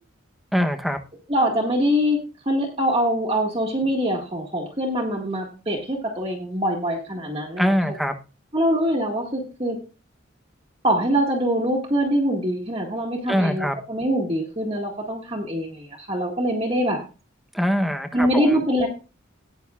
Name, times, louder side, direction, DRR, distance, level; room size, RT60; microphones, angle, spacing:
voice 1, 0.5-1.0 7.6-8.2 13.3-13.8 17.5-18.6, equal, ahead, 6 dB, 0.9 m, -23 dB
voice 2, 1.3-2.2 2.5-7.7 8.5-9.8 10.8-17.0 18.1-18.9, equal, 30° right, -1 dB, 1.8 m, -23 dB
19.0 x 6.4 x 2.4 m, 0.33 s
head